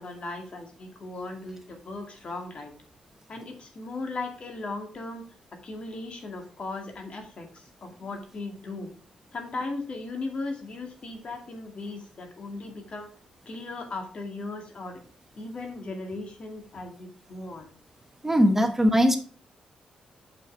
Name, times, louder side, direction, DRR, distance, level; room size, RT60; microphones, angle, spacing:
voice 1, 0.0-2.7 3.3-5.2 5.6-8.9 9.3-13.1 13.5-15.0 15.4-17.7, left 3 dB, 55° left, 3 dB, 2.2 m, -37 dB
voice 2, 18.2-19.2, equal, 15° right, 7 dB, 1.2 m, -20 dB
6.8 x 5.9 x 4.6 m, 0.43 s
supercardioid pair, 55°, 2 cm